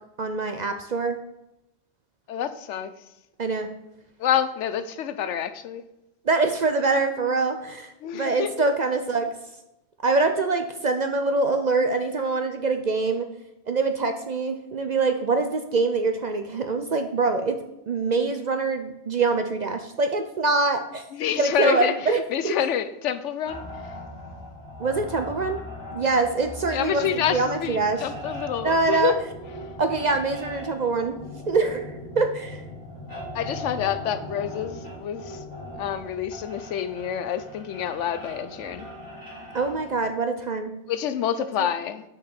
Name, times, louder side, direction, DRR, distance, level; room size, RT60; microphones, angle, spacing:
voice 1, 0.2-1.2 3.4-3.7 6.3-9.3 10.0-13.3 13.7-17.6 17.9-21.0 21.4-22.5 24.8-25.6 25.9-28.0 28.6-29.1 29.8-31.2 31.5-32.6 39.5-40.7, right 3 dB, 50° right, 0.5 m, -24 dB
voice 2, 2.3-2.9 4.2-5.8 8.0-8.7 21.1-23.6 26.7-29.2 33.3-35.4 35.8-38.9 40.9-42.0, left 9 dB, 80° left, 1.0 m, -27 dB
sound 1, 23.4-40.1, left 1 dB, 15° left, 2.6 m, -39 dB
6.1 x 4.7 x 6.6 m
omnidirectional pair, 1.2 m